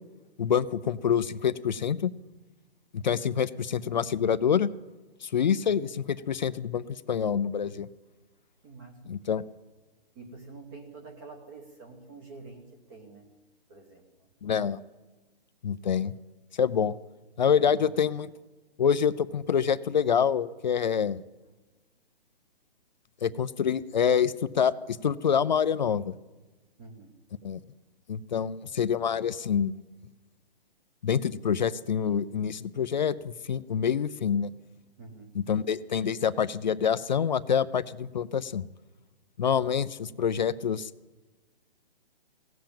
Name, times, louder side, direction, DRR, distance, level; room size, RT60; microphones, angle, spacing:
voice 1, 0.4-2.1 2.9-4.7 5.2-7.9 9.1-9.4 14.4-14.8 15.6-16.1 16.6-17.0 17.4-18.3 18.8-21.2 23.2-26.1 27.4-27.6 28.1-29.8 31.0-34.5 35.5-38.6 39.4-40.9, left 7 dB, 45° left, 15 dB, 0.4 m, -26 dB
voice 2, 8.6-9.1 10.1-13.3 13.7-14.3 17.6-18.0 26.8-27.1 35.0-35.3 39.4-39.7, right 3 dB, 20° right, 4 dB, 1.0 m, -48 dB
17.0 x 7.7 x 8.8 m, 1.2 s
hypercardioid pair, 165°, 31 cm